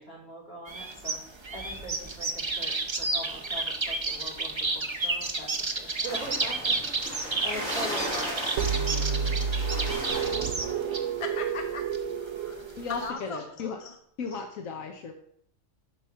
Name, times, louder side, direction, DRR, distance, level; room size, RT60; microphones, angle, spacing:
voice 1, 0.0-6.8 7.2-8.8, equal, 50° left, -4 dB, 3.4 m, -41 dB
sound 1, 0.7-13.1, right 3 dB, 25° right, 0.7 m, -32 dB
sound 2, 6.1-10.8, equal, 10° right, 3.0 m, -36 dB
sound 3, 8.6-13.3, right 6 dB, 65° right, 0.9 m, -30 dB
voice 2, 11.2-11.8 12.2-12.6 12.9-14.0, left 4 dB, 25° left, 4 dB, 1.0 m, -38 dB
voice 3, 12.8-13.8 14.2-15.1, left 5 dB, 80° left, 4 dB, 1.2 m, -35 dB
11.0 x 4.8 x 5.6 m, 0.69 s
omnidirectional pair, 1.4 m